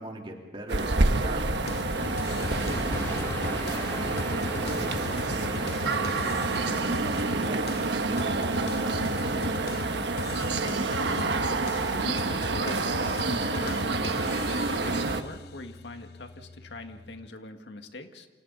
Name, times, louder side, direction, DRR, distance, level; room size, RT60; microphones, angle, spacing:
voice 1, 0.0-2.9 3.4-9.7, right 1 dB, 30° right, 0 dB, 3.5 m, -42 dB
sound 1, 0.7-15.2, right 3 dB, 80° right, 1.3 m, -28 dB
sound 2, 1.5-17.3, left 3 dB, 60° left, 0.6 m, -39 dB
sound 3, 1.9-7.5, left 1 dB, 15° left, 2.9 m, -39 dB
voice 2, 11.0-18.3, left 2 dB, 85° left, 5 dB, 1.8 m, -42 dB
29.5 x 27.0 x 4.1 m, 1.3 s
head